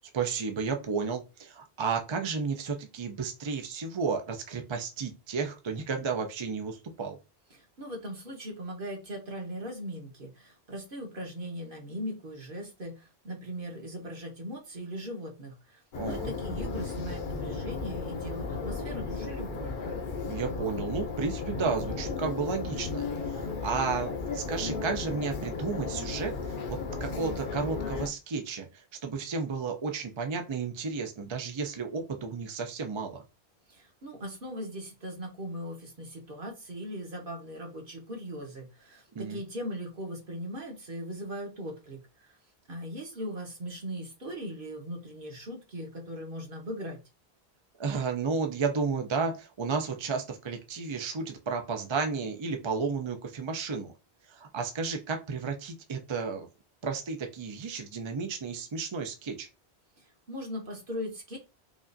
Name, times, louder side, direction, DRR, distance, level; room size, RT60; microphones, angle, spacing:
voice 1, 0.1-7.2 15.9-16.3 20.3-33.2 39.1-39.4 47.8-53.9 54.3-56.5 56.8-59.5, right 5 dB, 40° right, 4 dB, 0.4 m, -32 dB
voice 2, 7.5-19.8 33.7-42.1 42.7-47.0 60.0-61.4, equal, 55° right, 1 dB, 1.4 m, -39 dB
sound 1, 15.9-28.1, left 4 dB, 55° left, 0.8 m, -35 dB
4.9 x 2.4 x 2.6 m, 0.28 s
omnidirectional pair, 1.1 m